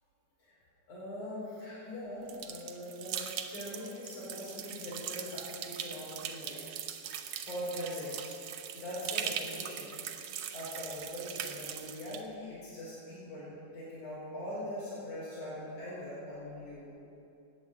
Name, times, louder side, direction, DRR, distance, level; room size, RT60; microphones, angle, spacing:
voice 1, 0.9-6.6 7.4-8.3 8.7-10.0 10.5-16.9, left 1 dB, 85° left, -9 dB, 5.9 m, -42 dB
sound 1, 2.3-12.2, right 9 dB, 70° right, 1.5 m, -41 dB
17.5 x 10.5 x 7.8 m, 2.7 s
omnidirectional pair, 3.4 m